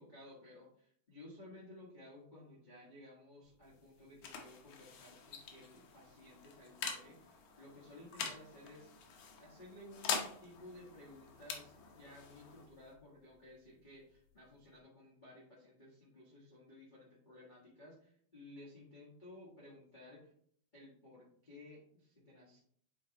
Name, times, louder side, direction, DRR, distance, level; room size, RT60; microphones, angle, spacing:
voice 1, 0.0-8.9 9.4-20.3 20.7-22.6, left 1 dB, 25° left, -7 dB, 1.0 m, -56 dB
sound 1, 3.4-14.8, left 6 dB, 85° left, 2.4 m, -46 dB
9.0 x 4.0 x 2.9 m, 0.62 s
omnidirectional pair, 3.4 m